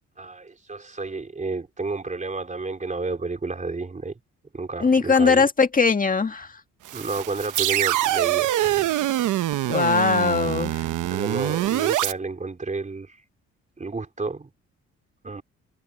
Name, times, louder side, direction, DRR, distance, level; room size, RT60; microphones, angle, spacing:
voice 1, 0.2-4.1 4.5-5.4 6.9-9.1 11.1-13.2 13.8-14.5 15.2-15.4, right 3 dB, 25° right, 4.1 m, -31 dB
voice 2, 4.8-6.5 9.7-10.8, left 4 dB, 25° left, 1.9 m, -20 dB
sound 1, 6.9-12.1, right 14 dB, 80° right, 1.1 m, -24 dB
cardioid pair, 90°, 30 cm